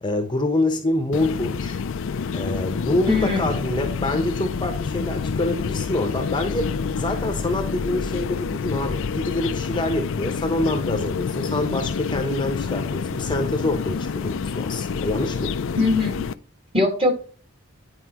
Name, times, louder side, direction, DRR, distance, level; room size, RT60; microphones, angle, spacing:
voice 1, 0.0-1.8 2.3-6.7 7.0-15.5, left 2 dB, 25° left, 6 dB, 0.9 m, -26 dB
sound 1, 1.1-16.3, left 5 dB, 70° left, 0.4 m, -28 dB
voice 2, 3.1-3.6 15.8-16.2 16.7-17.1, left 3 dB, 30° right, 3 dB, 2.0 m, -21 dB
9.8 x 4.6 x 2.9 m, 0.42 s
head